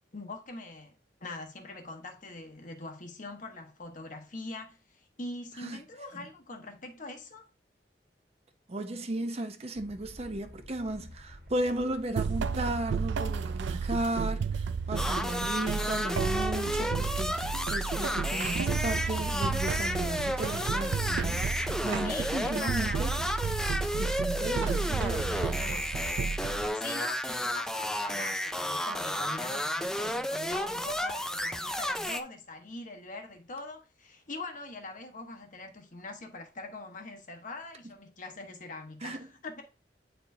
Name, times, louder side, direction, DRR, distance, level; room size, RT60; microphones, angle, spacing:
voice 1, 0.1-0.9 1.2-7.5 22.0-23.0 26.6-39.7, left 2 dB, 50° left, 1.1 m, -43 dB
voice 2, 8.7-21.4 21.8-23.2 24.0-25.9 39.0-39.2, right 1 dB, 35° right, 0.7 m, -35 dB
sound 1, 9.7-15.1, equal, 60° right, 1.5 m, -50 dB
sound 2, 12.2-26.7, right 5 dB, 85° right, 0.3 m, -32 dB
sound 3, 15.0-32.2, equal, 5° left, 0.4 m, -32 dB
9.0 x 4.4 x 2.7 m
head